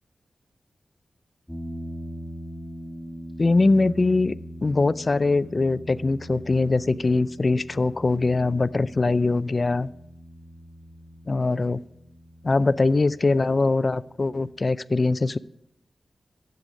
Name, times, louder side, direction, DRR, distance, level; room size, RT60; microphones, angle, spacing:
sound 1, 1.5-14.6, equal, ahead, 2.2 m, -42 dB
voice 1, 3.4-4.4 4.6-9.9 11.3-11.8 12.4-15.4, left 3 dB, 40° left, 0.3 m, -22 dB
12.0 x 7.7 x 5.1 m
wide cardioid pair, 85°, 0 cm